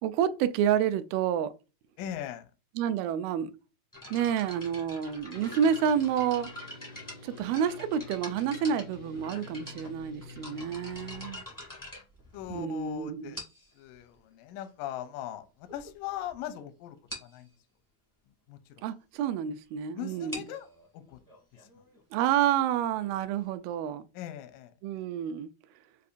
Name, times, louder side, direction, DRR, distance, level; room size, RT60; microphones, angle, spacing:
voice 1, 0.0-1.5 2.8-3.5 4.1-6.5 7.2-11.4 12.5-13.4 18.8-20.5 22.1-24.0 24.8-25.5, right 8 dB, 80° right, 2.3 m, -29 dB
voice 2, 2.0-2.5 12.3-13.4 13.8-17.5 18.5-18.6 20.0-20.7 20.9-21.2 21.6-21.7 24.1-24.7, left 11 dB, 85° left, 2.0 m, -40 dB
sound 1, 3.9-12.8 13.3-13.8 14.6-14.7 15.3-15.4 15.7-15.9 16.2-16.3 16.6-16.7 17.1-17.4 20.1-23.6, left 1 dB, 30° left, 0.3 m, -45 dB
sound 2, 5.3-11.3, left 3 dB, 65° left, 0.6 m, -48 dB
6.7 x 2.6 x 2.5 m
omnidirectional pair, 4.4 m